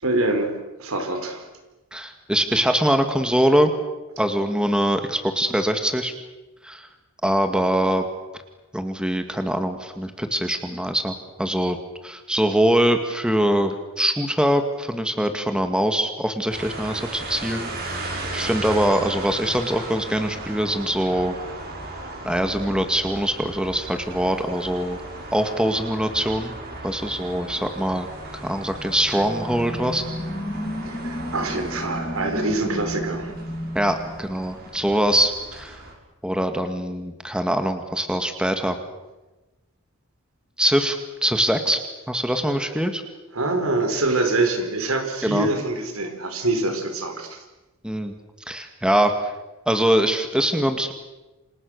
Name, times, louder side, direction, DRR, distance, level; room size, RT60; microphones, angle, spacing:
voice 1, 0.0-1.4 30.8-33.3 43.3-47.4, right 2 dB, 80° right, 6 dB, 4.9 m, -25 dB
voice 2, 1.9-3.7 4.2-6.1 6.6-6.9 7.2-8.0 8.7-11.8 12.0-21.4 22.2-25.0 25.3-26.5 26.8-28.1 28.3-30.0 33.7-35.8 36.2-38.8 40.6-41.8 42.1-43.0 45.2-45.5 47.8-48.1 48.5-49.1 49.7-50.9, equal, 5° right, 7 dB, 2.0 m, -23 dB
sound 1, 16.5-35.9, right 2 dB, 50° right, 6.0 m, -36 dB
sound 2, 28.4-35.0, left 1 dB, 20° left, 2.3 m, -33 dB
29.0 x 27.0 x 6.7 m, 1.1 s
head